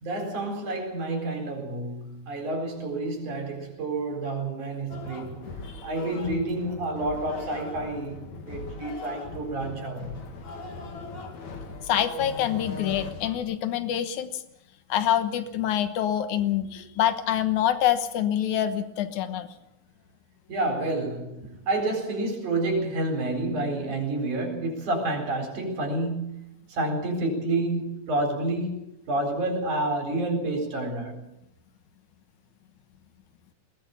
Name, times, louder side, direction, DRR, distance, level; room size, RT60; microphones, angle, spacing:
voice 1, 0.0-5.5 5.8-10.2 20.5-26.4 26.7-31.3, right 2 dB, 85° right, 5.9 m, -29 dB
sound 1, 4.9-13.4, left 4 dB, 70° left, 3.7 m, -39 dB
voice 2, 11.9-14.4 14.9-19.5, left 10 dB, 85° left, 2.6 m, -26 dB
20.5 x 18.5 x 7.1 m
omnidirectional pair, 3.4 m